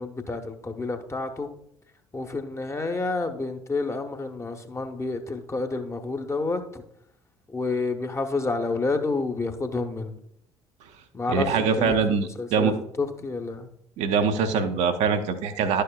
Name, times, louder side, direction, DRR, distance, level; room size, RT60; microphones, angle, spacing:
voice 1, 0.0-1.5 2.1-6.6 7.5-10.1 11.1-11.9 12.4-13.7, left 3 dB, 20° left, 5 dB, 0.9 m, -29 dB
voice 2, 11.3-12.7 14.0-15.8, right 6 dB, 55° right, 7 dB, 0.7 m, -23 dB
11.0 x 6.6 x 2.3 m, 0.74 s
figure-of-eight pair, 50°, 14 cm